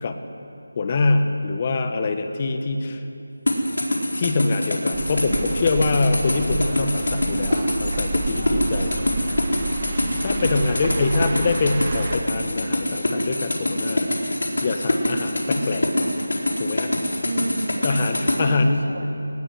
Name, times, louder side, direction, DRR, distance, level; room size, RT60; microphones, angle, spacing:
voice 1, 0.8-3.0 4.2-7.5 7.8-8.9 9.9-14.1 14.6-15.9 16.6-16.9 17.8-18.8, left 3 dB, 25° left, 7 dB, 1.3 m, -24 dB
sound 1, 3.5-18.4, left 1 dB, 75° left, 4.5 m, -24 dB
sound 2, 4.9-12.2, right 3 dB, 25° right, 1.4 m, -30 dB
voice 2, 7.9-9.2 17.2-19.2, right 2 dB, 65° right, 3 dB, 3.1 m, -33 dB
19.5 x 18.5 x 9.5 m, 2.8 s
figure-of-eight pair, 175°, 0 cm